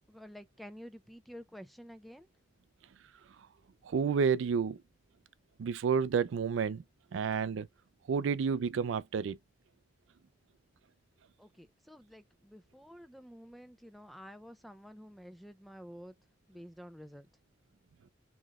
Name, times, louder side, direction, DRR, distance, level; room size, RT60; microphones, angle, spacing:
voice 1, 0.0-2.3 11.4-16.2 16.5-17.3, equal, ahead, 0.3 m, -50 dB
voice 2, 3.8-4.8 5.6-6.8 7.1-7.7 8.1-9.4, right 6 dB, 75° right, 0.4 m, -30 dB
4.0 x 3.0 x 2.4 m
head